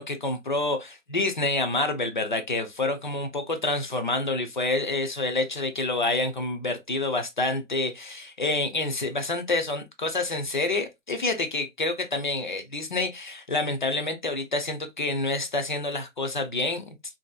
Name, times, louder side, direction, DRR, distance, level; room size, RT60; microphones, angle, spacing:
voice 1, 0.0-16.8, left 2 dB, 40° left, 0.4 m, -28 dB
2.7 x 2.5 x 2.2 m
hypercardioid pair, 165°, 40 cm